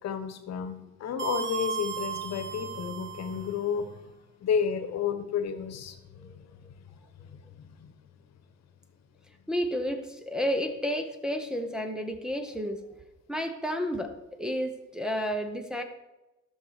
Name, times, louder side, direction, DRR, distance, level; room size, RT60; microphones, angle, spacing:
voice 1, 0.0-4.1 4.4-6.8 7.2-7.9, left 7 dB, 60° left, 9 dB, 1.3 m, -32 dB
sound 1, 1.2-3.6, right 8 dB, 40° right, 1.3 m, -35 dB
voice 2, 9.5-12.8 13.3-15.8, equal, ahead, 3 dB, 0.9 m, -31 dB
14.5 x 6.4 x 5.1 m, 1.0 s
cardioid pair, 135°, 30 cm